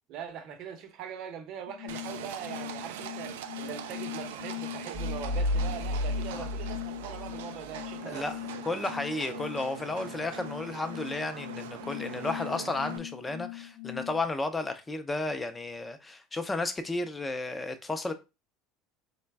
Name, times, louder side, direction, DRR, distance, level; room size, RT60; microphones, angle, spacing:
voice 1, 0.1-8.3 12.0-12.5, right 8 dB, 60° right, 0.7 m, -42 dB
sound 1, 1.7-14.2, left 20 dB, 70° left, 0.7 m, -42 dB
Livestock farm animals working animals, 1.9-13.0, right 10 dB, 80° right, 0.3 m, -42 dB
sound 2, 4.9-7.9, left 1 dB, 40° left, 0.9 m, -32 dB
voice 2, 8.6-18.1, left 2 dB, 15° left, 0.6 m, -33 dB
3.8 x 2.2 x 3.3 m
hypercardioid pair, 80°, 0 cm